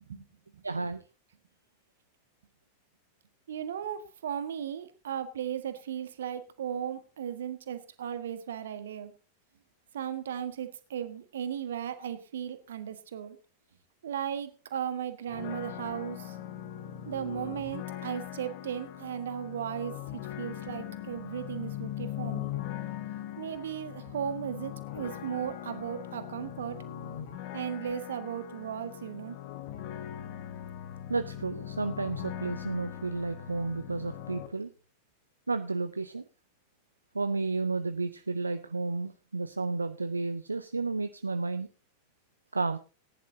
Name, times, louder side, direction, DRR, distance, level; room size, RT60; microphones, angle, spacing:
voice 1, 0.6-1.0 31.1-34.7 35.5-36.2 37.1-41.7 42.5-42.8, right 3 dB, 80° right, 10 dB, 0.6 m, -32 dB
voice 2, 3.5-9.1 9.9-13.4 14.0-16.3 17.1-22.6 23.4-26.8 27.5-29.4, right 9 dB, 60° right, 10 dB, 1.4 m, -36 dB
sound 1, 15.3-34.5, left 11 dB, 50° left, 1.6 m, -40 dB
19.0 x 10.5 x 2.7 m, 0.34 s
figure-of-eight pair, 90°, 0 cm